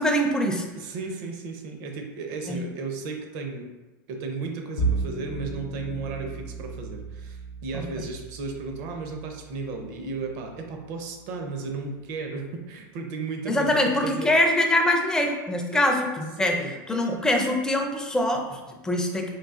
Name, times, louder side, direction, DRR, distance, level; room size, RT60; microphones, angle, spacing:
voice 1, 0.0-0.6 2.5-2.6 7.7-7.8 13.5-16.6 16.9-19.3, left 1 dB, 5° left, 2 dB, 0.4 m, -23 dB
voice 2, 0.7-3.7 4.1-14.3 15.7-15.8 16.4-16.7, right 4 dB, 55° right, 3 dB, 0.6 m, -34 dB
Bowed string instrument, 4.8-11.2, right 3 dB, 75° left, 0.7 m, -34 dB
3.8 x 2.4 x 2.4 m, 1.1 s
supercardioid pair, 125°, 11 cm